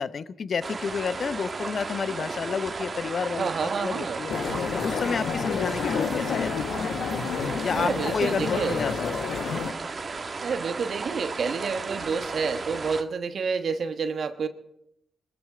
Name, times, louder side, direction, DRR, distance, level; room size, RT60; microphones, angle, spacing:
voice 1, 0.0-6.7 7.6-9.3, left 6 dB, 60° left, 14 dB, 0.7 m, -30 dB
sound 1, 0.6-13.0, right 4 dB, 45° right, 1.4 m, -35 dB
voice 2, 3.4-4.2 7.7-8.8 10.4-14.5, right 5 dB, 65° right, 8 dB, 1.2 m, -29 dB
sound 2, 4.3-9.7, left 6 dB, 80° left, 1.2 m, -30 dB
22.0 x 13.0 x 5.0 m, 0.83 s
cardioid pair, 60°, 0 cm